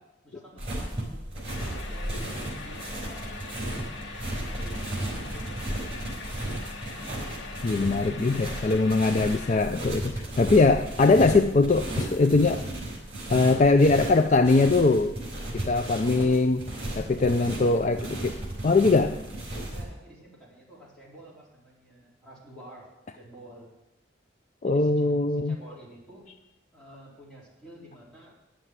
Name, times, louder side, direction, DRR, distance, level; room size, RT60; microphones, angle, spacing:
voice 1, 0.2-3.5 4.5-6.0 17.1-17.9 19.6-22.9 23.1-23.7 24.6-26.4 26.7-28.4, right 1 dB, 5° left, -7 dB, 4.0 m, -50 dB
sound 1, 0.6-19.8, right 1 dB, 35° right, 4.4 m, -35 dB
sound 2, 1.5-9.6, left 3 dB, 80° left, 1.2 m, -41 dB
voice 2, 7.6-12.7 13.3-15.2 15.6-16.7 17.0-18.4 18.6-19.2 24.6-25.6, left 3 dB, 40° left, 8 dB, 0.4 m, -21 dB
9.9 x 7.6 x 8.0 m, 0.91 s
head